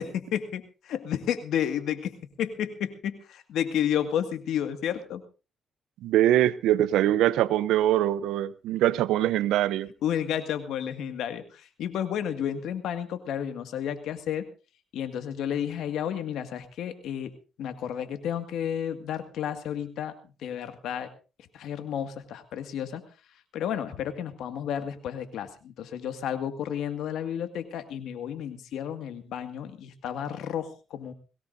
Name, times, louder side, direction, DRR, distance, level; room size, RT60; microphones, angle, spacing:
voice 1, 0.0-5.2 10.0-14.5 14.9-17.3 17.6-21.1 21.5-23.0 23.5-31.1, left 9 dB, 80° left, 2.0 m, -31 dB
voice 2, 6.0-9.9, right 13 dB, 90° right, 0.7 m, -23 dB
22.0 x 17.5 x 2.7 m
cardioid pair, 90°, 0 cm